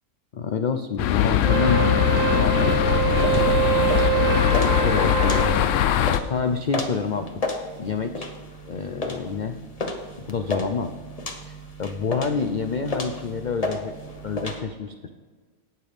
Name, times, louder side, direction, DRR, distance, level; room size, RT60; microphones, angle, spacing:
voice 1, 0.3-2.8 3.1-3.6 4.1-6.0 6.3-7.4 7.8-8.3 8.6-9.6 9.9-10.0 10.3-10.9 11.4-14.0 14.2-15.1, left 5 dB, 85° left, 7 dB, 0.4 m, -28 dB
sound 1, 1.0-6.2, left 10 dB, 65° left, 0.8 m, -21 dB
Wind instrument woodwind instrument, 1.4-5.6, right 9 dB, 80° right, 1.3 m, -25 dB
sound 2, 3.2-14.6, left 2 dB, 30° left, 1.0 m, -33 dB
18.0 x 6.9 x 3.5 m, 1.4 s
omnidirectional pair, 1.5 m